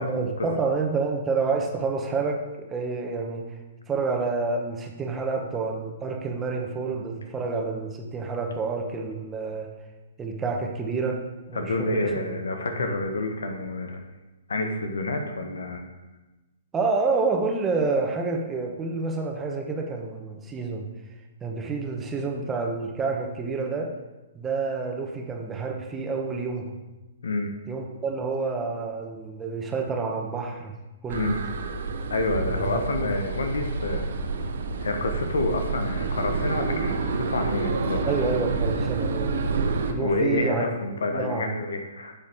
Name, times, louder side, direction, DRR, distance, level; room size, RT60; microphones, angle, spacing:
voice 1, 0.0-3.5 3.9-9.7 10.2-11.2 11.5-12.1 12.6-12.8 16.7-20.9 21.4-23.9 24.3-26.8 27.7-30.7 31.0-31.3 32.5-33.1 38.1-39.4 39.9-40.6 40.9-41.5, right 4 dB, 15° right, 2 dB, 1.4 m, -28 dB
voice 2, 11.5-14.0 14.5-15.8 27.2-27.5 31.1-31.4 32.1-34.1 34.8-38.4 40.0-42.1, left 2 dB, 75° left, 5 dB, 1.3 m, -28 dB
sound 1, 31.1-39.9, right 4 dB, 65° right, 1.0 m, -28 dB
12.0 x 7.2 x 3.7 m, 1.1 s
figure-of-eight pair, 125°, 0 cm